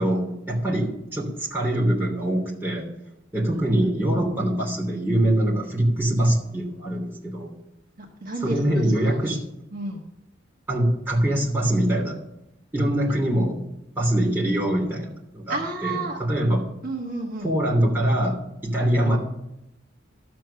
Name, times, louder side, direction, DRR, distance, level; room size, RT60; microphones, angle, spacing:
voice 1, 0.0-2.9 3.3-7.5 8.4-9.4 10.7-12.2 12.7-13.6 14.0-16.7 17.4-19.2, right 1 dB, 10° right, -3 dB, 3.0 m, -23 dB
voice 2, 4.1-4.5 8.0-9.2 9.7-10.0 15.5-16.2 16.8-17.5, right 2 dB, 45° right, 0 dB, 1.4 m, -32 dB
12.5 x 7.7 x 5.8 m, 0.86 s
head